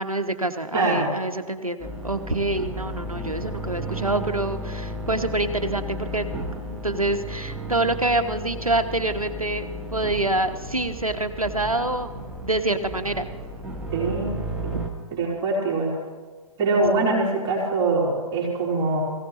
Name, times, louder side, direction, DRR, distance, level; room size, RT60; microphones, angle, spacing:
voice 1, 0.0-6.4 6.7-13.3, right 2 dB, 90° right, 7 dB, 1.1 m, -26 dB
voice 2, 0.7-1.1 13.9-14.3 14.6-14.8 15.1-15.9 16.6-19.0, right 3 dB, 25° right, -4 dB, 3.3 m, -23 dB
sound 1, 1.8-14.9, equal, 5° right, 1.4 m, -34 dB
20.5 x 16.0 x 3.0 m, 1.4 s
figure-of-eight pair, 125°, 18 cm